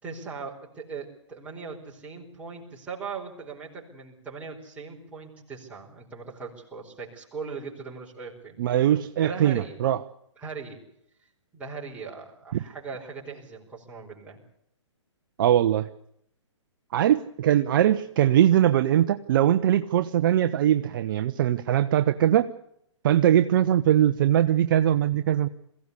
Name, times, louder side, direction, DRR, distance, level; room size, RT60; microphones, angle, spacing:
voice 1, 0.0-8.6 9.2-9.8 10.4-10.8 11.5-14.4, right 5 dB, 10° right, -4 dB, 4.6 m, -39 dB
voice 2, 8.6-10.0 15.4-15.9 16.9-22.5 23.0-25.5, right 11 dB, 45° right, 9 dB, 0.8 m, -21 dB
22.5 x 16.5 x 8.4 m, 0.75 s
hypercardioid pair, 150°, 16 cm